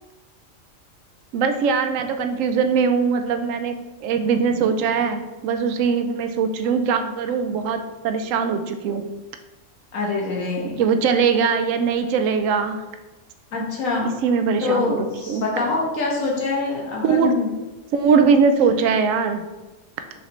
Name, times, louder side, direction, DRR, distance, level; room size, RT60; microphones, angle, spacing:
voice 1, 1.3-3.8 4.0-9.0 10.8-12.8 14.2-15.4 17.0-17.3 17.9-19.4, right 5 dB, 75° right, 8 dB, 1.0 m, -21 dB
voice 2, 9.9-10.8 13.5-14.1 14.6-17.5, left 3 dB, 80° left, -2 dB, 1.8 m, -25 dB
6.5 x 4.9 x 3.1 m, 1.1 s
omnidirectional pair, 1.4 m